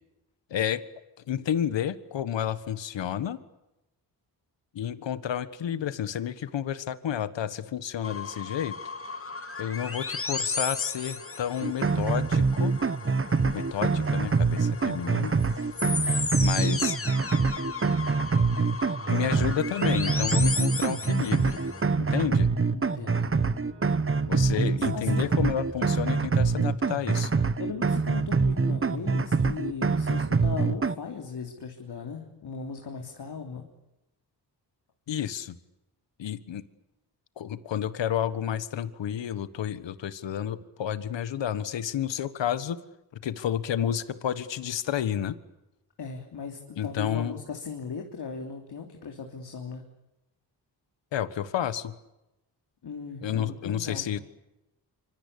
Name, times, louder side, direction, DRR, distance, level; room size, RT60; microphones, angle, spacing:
voice 1, 1.3-3.4 4.7-8.7 9.6-12.7 13.4-15.3 16.0-17.0 19.1-21.6 22.0-22.5 24.3-27.3 35.1-35.5 36.2-36.6 37.4-42.8 43.2-45.4 46.8-47.3 51.1-51.9 53.2-54.2, left 9 dB, 85° left, 14 dB, 1.5 m, -30 dB
sound 1, 8.0-21.8, left 4 dB, 30° left, 2.4 m, -35 dB
sound 2, 11.6-31.0, right 4 dB, 30° right, 1.2 m, -25 dB
sound 3, 17.2-26.1, right 1 dB, 15° right, 7.0 m, -47 dB
voice 2, 22.7-23.3 24.7-25.3 27.3-33.7 46.0-49.8 52.8-54.1, left 5 dB, 65° left, 2 dB, 3.5 m, -38 dB
26.0 x 25.5 x 8.6 m, 0.93 s
cardioid pair, 75°, 43 cm